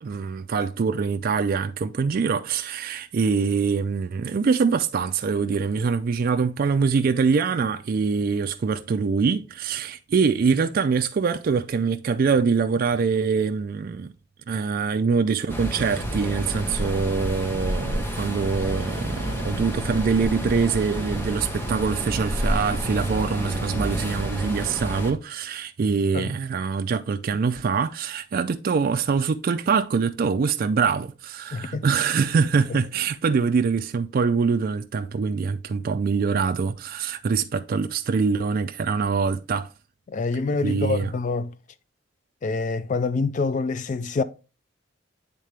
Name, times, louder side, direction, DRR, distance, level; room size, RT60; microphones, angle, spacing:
voice 1, 0.0-14.1 14.5-39.7 40.6-41.1, right 5 dB, 50° right, 0.4 m, -24 dB
sound 1, 15.5-25.1, equal, 10° left, 0.9 m, -29 dB
sound 2, 18.5-24.7, right 1 dB, 70° left, 2.5 m, -42 dB
voice 2, 31.5-31.9 40.1-41.5 42.4-44.2, left 4 dB, 40° left, 0.3 m, -26 dB
9.3 x 3.7 x 3.3 m
head